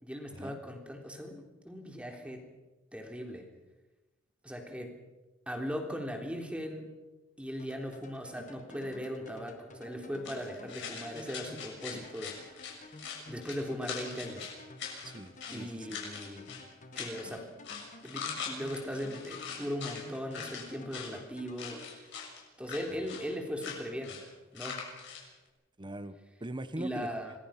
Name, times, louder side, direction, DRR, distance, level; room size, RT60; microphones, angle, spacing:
voice 1, 0.0-2.4 2.9-3.4 4.4-4.9 5.5-6.9 7.4-12.8 13.3-14.5 15.5-16.5 16.9-17.5 18.0-21.8 22.6-24.2 24.5-24.9 26.8-27.3, equal, 5° right, 2 dB, 3.5 m, -39 dB
sound 1, 7.6-22.7, left 2 dB, 40° left, 2.0 m, -52 dB
sound 2, 10.2-15.6 15.9-16.6 16.9-17.4 17.6-20.1 20.3-21.1 21.6-22.4 22.7-23.3 23.6-23.8 24.0-24.2 24.5-25.2, left 6 dB, 60° left, 6.9 m, -42 dB
voice 2, 15.0-16.0 25.8-27.2, right 1 dB, 25° right, 11 dB, 1.0 m, -42 dB
27.0 x 21.0 x 5.8 m, 1.1 s
head